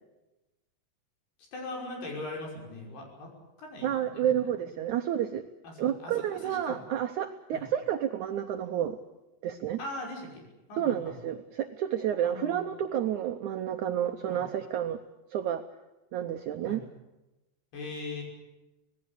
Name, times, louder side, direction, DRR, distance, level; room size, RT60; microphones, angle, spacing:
voice 1, 1.5-3.3 3.6-4.8 5.6-6.8 7.5-7.6 9.8-10.4 10.7-11.2 12.2-12.7 14.3-14.4 16.6-16.8 17.7-18.2, left 2 dB, 80° left, 1 dB, 7.8 m, -40 dB
voice 2, 3.8-5.4 5.8-9.0 9.4-9.8 10.8-15.0 15.3-15.6 16.1-16.8, right 10 dB, 80° right, 7 dB, 1.7 m, -30 dB
25.0 x 18.5 x 8.2 m, 1.0 s
omnidirectional pair, 4.6 m